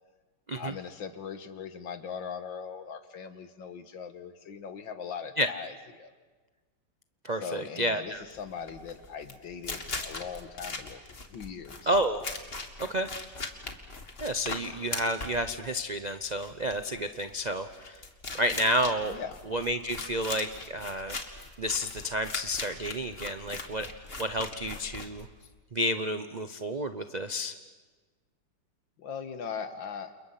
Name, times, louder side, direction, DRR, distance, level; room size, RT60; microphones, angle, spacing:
voice 1, 0.5-6.1 7.3-11.9 19.1-19.4 29.0-30.1, left 6 dB, 75° left, 9 dB, 2.1 m, -40 dB
voice 2, 7.2-8.2 11.9-12.2 12.9-13.1 14.2-18.0 18.3-19.2 19.5-21.2 21.6-23.9 24.2-25.3 25.7-27.5, equal, 65° right, 8 dB, 0.4 m, -30 dB
sound 1, 8.2-25.6, left 3 dB, 30° left, 1.9 m, -40 dB
29.5 x 28.5 x 5.8 m, 1.3 s
omnidirectional pair, 2.1 m